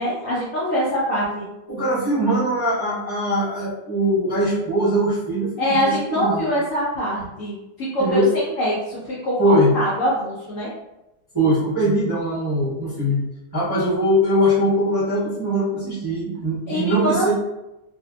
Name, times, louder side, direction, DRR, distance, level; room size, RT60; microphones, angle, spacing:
voice 1, 0.0-1.5 5.6-10.7 16.7-17.3, equal, 65° left, -7 dB, 0.8 m, -24 dB
voice 2, 1.7-6.5 8.0-8.3 9.4-9.7 11.3-13.2 13.5-17.3, equal, 20° right, -11 dB, 0.7 m, -21 dB
2.6 x 2.5 x 2.3 m, 0.96 s
omnidirectional pair, 1.9 m